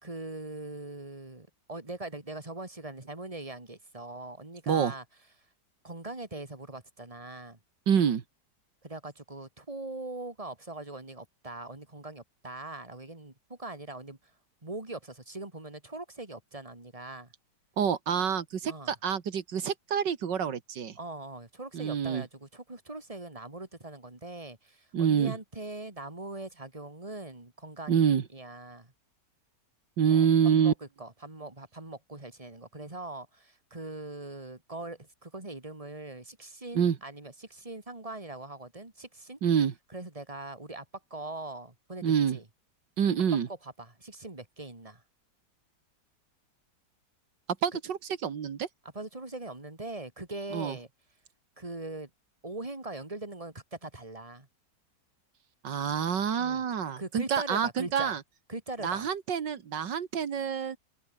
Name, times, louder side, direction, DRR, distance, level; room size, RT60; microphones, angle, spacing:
voice 1, 0.0-5.0 5.8-7.6 8.8-14.2 14.6-17.3 18.7-18.9 21.0-28.9 30.1-39.4 39.9-40.9 41.1-42.5 43.3-45.0 47.7-47.8 48.9-50.9 51.6-52.1 52.4-54.5 56.4-56.6 57.0-58.1 58.5-59.1, right 2 dB, 20° right, 3.4 m, -41 dB
voice 2, 7.9-8.2 17.8-21.0 21.7-22.2 24.9-25.4 27.9-28.2 30.0-30.7 36.8-37.0 39.4-39.7 42.0-42.4 43.0-43.5 47.6-48.7 50.5-50.8 55.6-58.2 58.8-60.8, right 7 dB, 85° right, 2.3 m, -27 dB
omnidirectional pair, 1.9 m